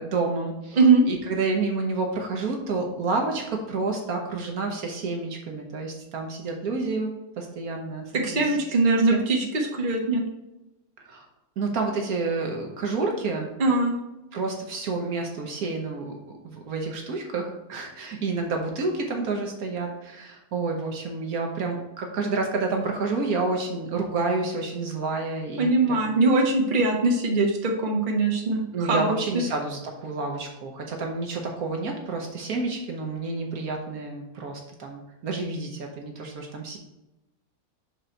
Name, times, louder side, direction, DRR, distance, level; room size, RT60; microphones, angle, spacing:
voice 1, 0.0-0.8 1.1-7.1 7.4-8.0 8.3-8.6 9.1-9.3 11.0-11.3 11.6-13.5 14.3-16.2 16.4-26.1 28.7-36.8, right 3 dB, 65° right, 2 dB, 1.3 m, -29 dB
voice 2, 8.2-10.2 13.6-13.9 25.6-28.6 28.9-29.4, right 3 dB, 35° right, 0 dB, 1.2 m, -21 dB
6.7 x 3.9 x 4.4 m, 0.99 s
omnidirectional pair, 1.7 m